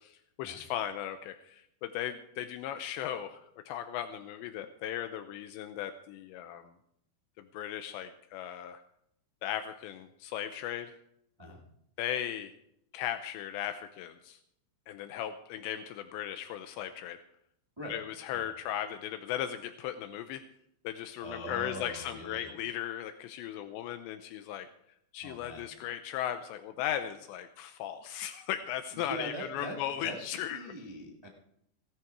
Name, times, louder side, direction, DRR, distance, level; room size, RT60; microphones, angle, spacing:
voice 1, 0.0-6.7 7.4-8.8 9.4-10.9 12.0-12.5 12.9-14.4 14.9-17.2 17.9-20.4 20.8-24.7 25.1-30.7, left 11 dB, 85° left, 9 dB, 2.9 m, -37 dB
voice 2, 21.2-22.5 25.2-25.6 28.9-31.3, equal, 45° right, -1 dB, 0.3 m, -42 dB
17.5 x 13.0 x 4.7 m, 0.75 s
omnidirectional pair, 5.1 m